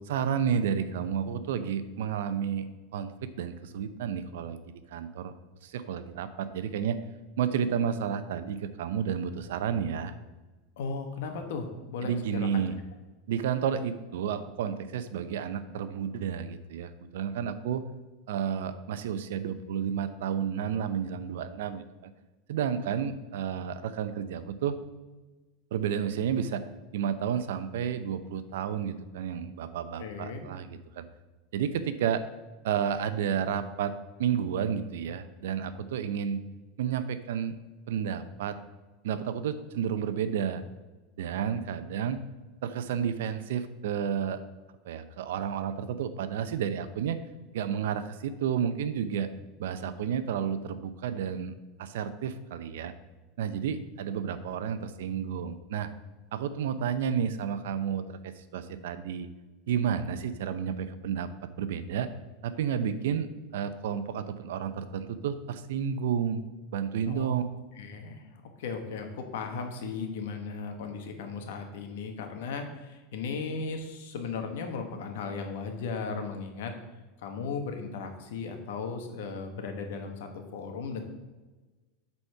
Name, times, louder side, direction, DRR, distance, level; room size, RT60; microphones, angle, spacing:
voice 1, 0.0-2.7 2.9-5.3 5.6-7.0 7.4-10.1 12.0-12.8 13.3-17.8 18.3-22.1 22.5-24.8 25.7-26.6 26.9-30.7 30.9-31.0 31.5-32.2 32.6-33.9 34.2-36.4 36.8-37.6 37.9-38.6 39.0-40.6 41.2-42.2 42.6-44.4 44.8-47.2 47.5-49.3 49.6-51.5 51.8-52.9 53.4-55.9 56.3-59.3 59.7-61.3 61.6-62.1 62.4-67.4, right 8 dB, 90° right, 12 dB, 0.6 m, -31 dB
voice 2, 10.8-12.6 30.0-30.5 67.0-67.5 67.8-68.3 68.6-76.7 77.2-81.0, left 4 dB, 80° left, 5 dB, 1.4 m, -36 dB
8.0 x 4.3 x 5.6 m, 1.2 s
supercardioid pair, 165°, 0 cm